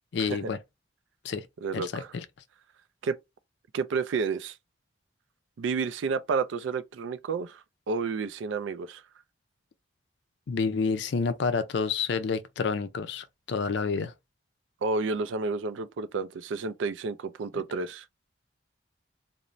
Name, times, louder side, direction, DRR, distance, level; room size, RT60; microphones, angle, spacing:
voice 1, 0.1-0.6 1.2-1.5 1.7-2.2 10.5-14.1, left 5 dB, 65° left, 0.4 m, -29 dB
voice 2, 1.6-2.1 3.0-3.2 3.7-4.6 5.6-9.0 14.8-18.1, right 4 dB, 80° right, 0.3 m, -30 dB
2.5 x 2.0 x 3.0 m
head